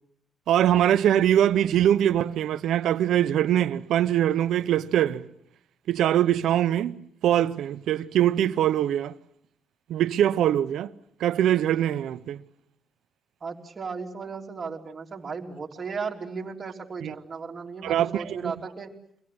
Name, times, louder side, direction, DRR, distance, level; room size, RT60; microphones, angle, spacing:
voice 1, 0.5-5.3 5.9-9.1 9.9-10.9 11.2-12.4 17.0-17.1 17.8-18.5, right 11 dB, 75° right, 0.9 m, -23 dB
voice 2, 13.4-18.9, right 5 dB, 35° right, 3.5 m, -35 dB
25.0 x 17.5 x 9.6 m
cardioid pair, 90°, 0 cm